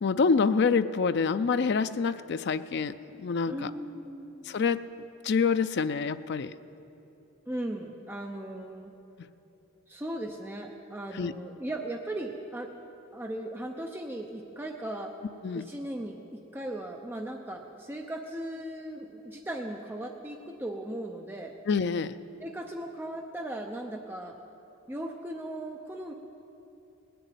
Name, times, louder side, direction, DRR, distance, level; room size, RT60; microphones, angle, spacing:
voice 1, 0.0-3.7 4.4-4.8 5.2-6.5 11.1-11.3 15.4-15.7 21.7-22.1, left 5 dB, 50° left, 12 dB, 0.4 m, -26 dB
voice 2, 3.5-4.5 7.5-8.9 9.9-12.7 13.1-15.1 15.5-21.6 22.4-24.4 24.9-26.1, right 1 dB, 10° right, 2 dB, 0.6 m, -37 dB
19.0 x 6.9 x 9.1 m, 3.0 s
head